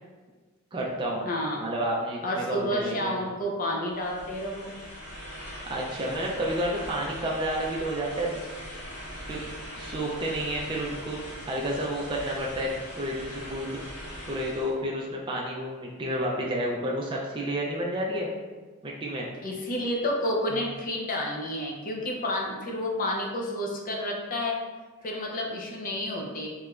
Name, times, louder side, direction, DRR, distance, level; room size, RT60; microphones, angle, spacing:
voice 1, 0.7-1.3 1.6-3.2 5.6-8.4 9.3-11.2 11.5-13.8 14.3-18.3 18.8-19.3 20.5-20.6, right 1 dB, 20° right, -3 dB, 0.3 m, -30 dB
voice 2, 1.2-1.6 2.2-4.7 19.4-24.6 25.0-26.5, left 1 dB, 40° left, 0 dB, 0.5 m, -30 dB
sound 1, 3.9-14.8, equal, 85° left, 1.4 m, -41 dB
3.2 x 2.9 x 2.3 m, 1.3 s
head